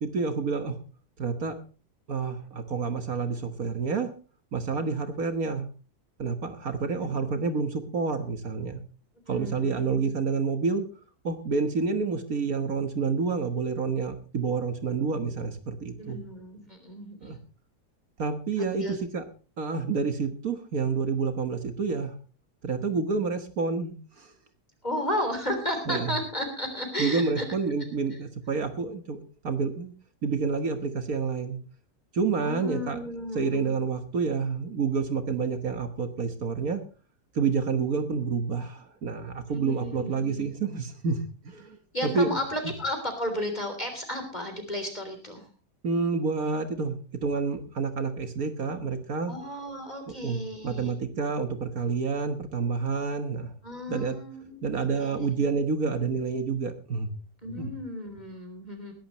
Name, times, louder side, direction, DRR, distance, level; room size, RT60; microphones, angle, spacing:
voice 1, 0.0-0.8 1.2-1.5 2.1-4.1 4.5-5.7 6.2-8.8 9.3-10.8 11.2-16.2 17.2-17.4 18.2-18.9 19.1-19.2 19.6-22.2 22.6-24.3 25.9-26.1 27.0-29.2 29.4-29.9 30.2-31.6 32.1-33.0 33.3-36.8 37.4-41.8 42.0-42.4 45.8-49.3 50.2-53.5 53.9-54.2 54.6-57.1 57.6-57.7, right 4 dB, 60° right, 8 dB, 1.8 m, -28 dB
voice 2, 7.0-7.4 9.3-10.1 16.0-17.3 18.6-19.0 24.8-27.5 28.1-28.2 32.4-33.7 39.5-40.5 41.9-45.5 49.3-50.9 53.6-55.4 57.4-58.9, left 1 dB, 25° left, 5 dB, 3.6 m, -34 dB
21.0 x 11.5 x 3.1 m, 0.36 s
omnidirectional pair, 1.7 m